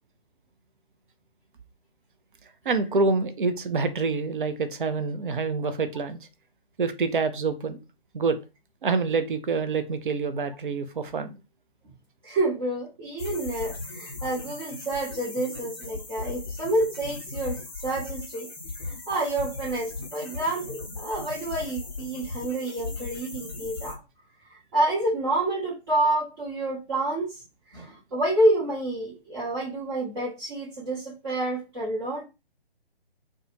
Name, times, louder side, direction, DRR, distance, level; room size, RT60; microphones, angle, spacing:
voice 1, 2.6-6.2 6.8-7.8 8.1-8.4 8.8-11.4, right 4 dB, 55° right, 12 dB, 0.6 m, -26 dB
voice 2, 12.2-18.5 18.8-24.0 24.5-27.4 27.7-32.2, right 1 dB, 25° right, -8 dB, 1.1 m, -28 dB
sound 1, 13.2-23.9, left 3 dB, 25° left, 0.6 m, -37 dB
2.4 x 2.3 x 3.0 m, 0.28 s
figure-of-eight pair, 140°, 30 cm